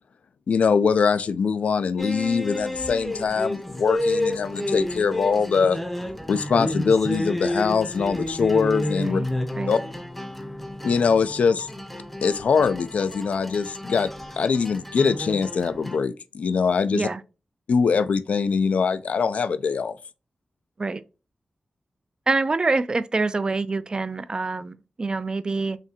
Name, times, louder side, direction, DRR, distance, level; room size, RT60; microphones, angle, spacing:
voice 1, 0.5-5.8 6.3-9.2 9.7-9.8 10.8-11.7 12.2-14.1 14.4-17.1 17.7-20.0, left 5 dB, 85° left, 0.3 m, -22 dB
sound 1, 2.0-16.0, left 1 dB, 5° left, 0.6 m, -30 dB
voice 2, 22.3-25.8, right 3 dB, 40° right, 0.4 m, -26 dB
5.0 x 2.7 x 2.7 m
wide cardioid pair, 90°, 2 cm